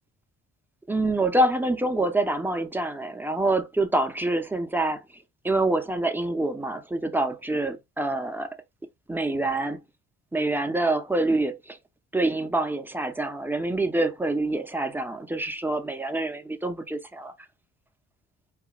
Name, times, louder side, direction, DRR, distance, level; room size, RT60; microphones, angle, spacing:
voice 1, 0.9-5.0 5.4-8.6 9.1-9.8 10.3-11.8 12.1-17.3, right 2 dB, 5° right, 0.7 m, -26 dB
4.0 x 2.5 x 2.9 m
cardioid pair, 90°, 30 cm